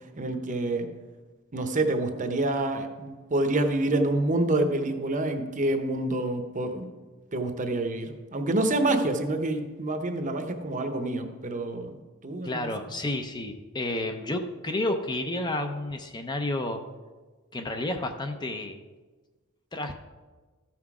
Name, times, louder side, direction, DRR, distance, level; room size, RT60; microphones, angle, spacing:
voice 1, 0.2-0.9 1.5-6.9 7.3-12.7, right 2 dB, 35° right, 6 dB, 0.8 m, -27 dB
voice 2, 12.4-16.8 17.5-18.8 19.7-19.9, left 1 dB, 20° left, 6 dB, 0.5 m, -31 dB
14.0 x 5.9 x 4.8 m, 1.3 s
head